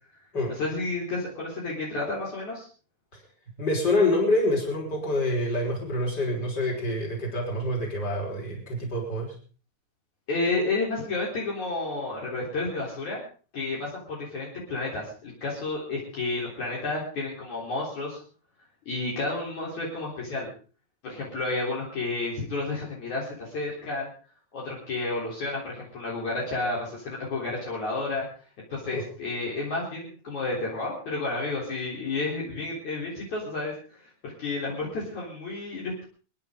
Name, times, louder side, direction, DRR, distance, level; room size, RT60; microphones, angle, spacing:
voice 1, 0.5-2.7 10.3-13.2 13.5-18.2 18.9-20.5 21.0-24.1 24.5-28.2 28.7-36.0, left 2 dB, 50° left, -4 dB, 5.0 m, -31 dB
voice 2, 3.6-9.3 28.9-29.1, left 1 dB, 25° left, -1 dB, 5.9 m, -26 dB
29.0 x 10.5 x 3.9 m, 0.39 s
omnidirectional pair, 4.5 m